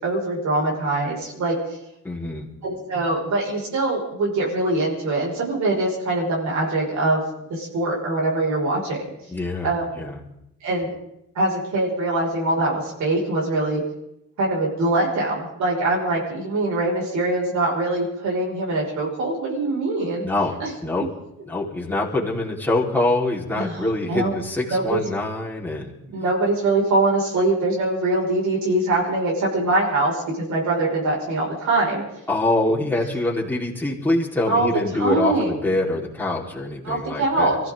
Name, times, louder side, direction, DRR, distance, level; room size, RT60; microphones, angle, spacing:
voice 1, 0.0-1.6 2.6-7.2 7.5-9.1 9.6-9.8 10.6-10.9 11.3-13.8 14.4-20.3 20.6-20.7 23.6-24.3 24.7-25.0 26.1-32.0 34.5-35.5 36.8-37.5, right 2 dB, 70° right, -3 dB, 5.9 m, -23 dB
voice 2, 2.0-2.5 9.3-10.2 20.2-21.1 21.5-25.9 32.3-37.6, left 2 dB, 5° left, -4 dB, 4.4 m, -24 dB
24.0 x 15.5 x 3.9 m, 0.83 s
cardioid pair, 90°, 30 cm